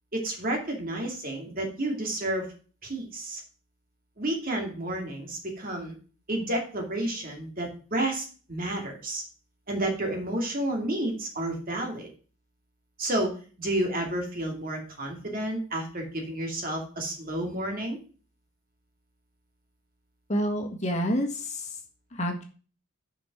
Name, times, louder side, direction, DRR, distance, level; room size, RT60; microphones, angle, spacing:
voice 1, 0.1-2.5 2.8-3.4 4.2-5.9 6.3-9.2 9.7-12.1 13.0-18.0, right 1 dB, 40° right, 2 dB, 2.4 m, -31 dB
voice 2, 20.3-21.7 22.1-22.4, equal, 35° left, 1 dB, 1.6 m, -28 dB
7.3 x 5.3 x 6.0 m, 0.38 s
head